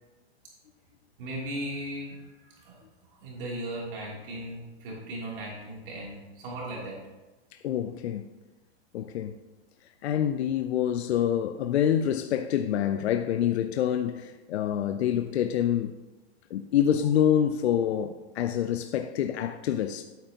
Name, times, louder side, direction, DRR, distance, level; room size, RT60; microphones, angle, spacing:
voice 1, 1.2-2.8 3.2-7.0, right 1 dB, 55° right, 3.0 m, -37 dB
voice 2, 7.5-8.2 8.9-9.3 10.0-16.0 16.5-20.0, left 10 dB, 75° left, 0.6 m, -26 dB
11.0 x 9.2 x 2.9 m
hypercardioid pair, 140°, 33 cm